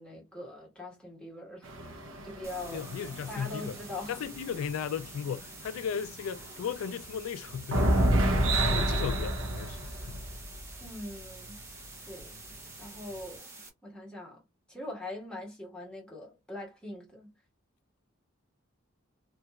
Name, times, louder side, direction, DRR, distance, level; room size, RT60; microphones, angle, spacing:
voice 1, 0.0-2.8 3.3-4.2 10.8-11.6 12.0-14.4 14.7-17.3, left 2 dB, 5° left, 1.5 m, -42 dB
sound 1, 1.6-5.4 5.8-5.9 6.2-6.7 7.5-10.8 11.6-11.7 12.2-12.3, right 1 dB, 70° right, 0.8 m, -29 dB
sound 2, 2.4-13.7, right 2 dB, 15° right, 0.7 m, -48 dB
voice 2, 2.6-3.7 4.1-7.9 8.6-10.2, left 7 dB, 80° left, 0.3 m, -36 dB
3.1 x 2.8 x 2.3 m
head